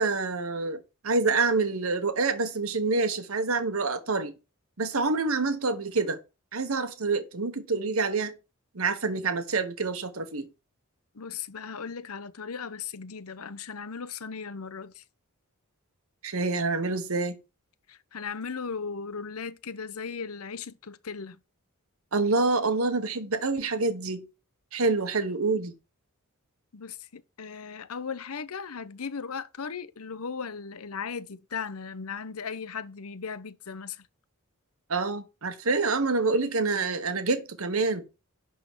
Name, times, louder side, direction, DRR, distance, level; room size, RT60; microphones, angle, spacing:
voice 1, 0.0-4.3 4.8-6.2 6.5-8.3 8.7-10.5 16.2-17.4 22.1-24.2 24.7-25.7 34.9-38.0, right 3 dB, 70° right, 1.3 m, -27 dB
voice 2, 11.1-15.0 17.9-21.4 26.7-34.0, left 5 dB, 80° left, 0.9 m, -37 dB
11.0 x 3.9 x 7.4 m
head